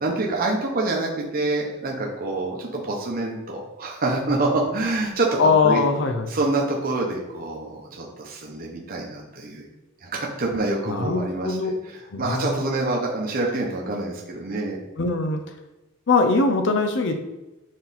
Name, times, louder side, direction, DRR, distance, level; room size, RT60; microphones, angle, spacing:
voice 1, 0.0-5.8 6.3-9.6 10.0-14.8, right 2 dB, 45° right, -1 dB, 0.9 m, -26 dB
voice 2, 5.4-6.3 10.9-11.7 12.1-12.6 15.0-15.4 16.1-17.2, left 4 dB, 65° left, 5 dB, 0.6 m, -21 dB
6.3 x 4.2 x 4.1 m, 1.0 s
head